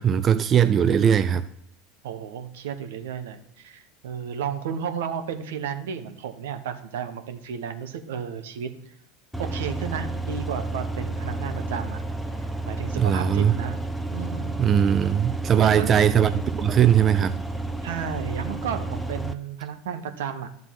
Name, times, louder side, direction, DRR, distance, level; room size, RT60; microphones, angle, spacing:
voice 1, 0.0-1.4 13.0-13.5 14.6-17.4, right 9 dB, 35° right, 11 dB, 0.4 m, -20 dB
voice 2, 2.0-8.7 9.4-12.0 12.7-13.8 14.1-14.6 15.6-16.0 17.8-20.5, right 8 dB, 75° right, 7 dB, 0.9 m, -33 dB
sound 1, 9.3-19.3, right 2 dB, 5° left, 0.7 m, -31 dB
11.5 x 3.9 x 7.5 m, 0.73 s
hypercardioid pair, 80°, 0 cm